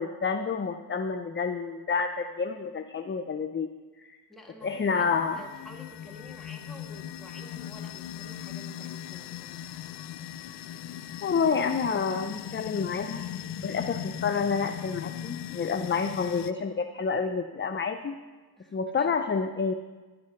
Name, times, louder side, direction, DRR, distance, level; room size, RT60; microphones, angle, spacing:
voice 1, 0.0-3.7 4.6-5.4 11.2-13.2 13.6-18.2 18.7-19.7, left 5 dB, 30° left, 6 dB, 0.5 m, -29 dB
voice 2, 4.3-10.0 18.6-19.2, left 1 dB, ahead, -1 dB, 2.0 m, -50 dB
sound 1, 4.6-16.5, left 11 dB, 85° left, 0.5 m, -39 dB
10.5 x 7.8 x 5.8 m, 1.3 s
cardioid pair, 60°, 41 cm